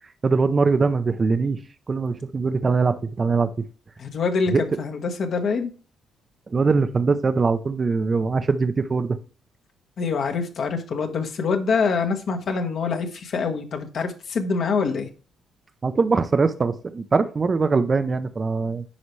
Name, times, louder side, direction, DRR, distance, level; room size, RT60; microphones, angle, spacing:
voice 1, 0.2-1.6 1.9-3.7 4.5-4.6 6.5-9.2 15.8-18.8, right 4 dB, 35° right, 0.6 m, -22 dB
voice 2, 4.0-5.7 10.0-15.1, left 5 dB, 60° left, 1.4 m, -25 dB
9.7 x 4.9 x 3.2 m
cardioid pair, 90°, 0 cm